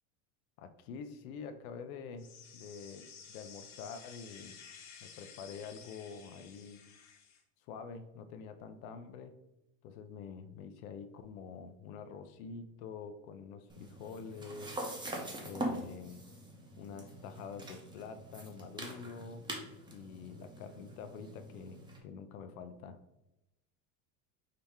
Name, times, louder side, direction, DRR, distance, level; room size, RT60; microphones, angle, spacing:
voice 1, 0.6-2.3 2.5-4.6 5.0-6.8 7.7-9.3 9.8-14.7 15.4-16.2 16.8-19.4 19.9-23.0, left 6 dB, 85° left, 8 dB, 0.7 m, -46 dB
sound 1, 2.2-7.4, left 6 dB, 65° left, 1.0 m, -53 dB
sound 2, 13.7-22.0, right 1 dB, 10° right, 0.8 m, -43 dB
5.2 x 2.9 x 3.5 m, 0.92 s
cardioid pair, 140°, 41 cm